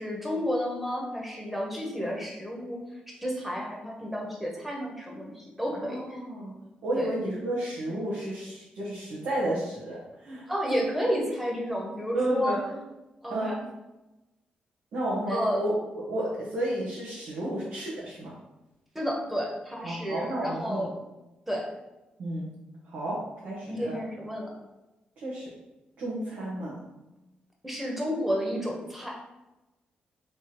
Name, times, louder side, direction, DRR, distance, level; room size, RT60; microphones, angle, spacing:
voice 1, 0.0-2.8 3.1-6.0 6.9-7.1 10.5-12.6 13.2-13.6 15.3-15.6 18.9-20.9 21.5-21.7 23.7-24.5 27.6-29.2, equal, 5° right, -2 dB, 1.1 m, -31 dB
voice 2, 5.7-6.5 6.8-10.5 12.1-12.8 13.3-13.6 14.9-18.3 19.8-20.9 22.2-22.5 22.8-24.0 25.2-25.5 26.0-26.8, right 1 dB, 80° right, -7 dB, 1.2 m, -32 dB
3.4 x 3.0 x 4.5 m, 1.0 s
cardioid pair, 100°, 3 cm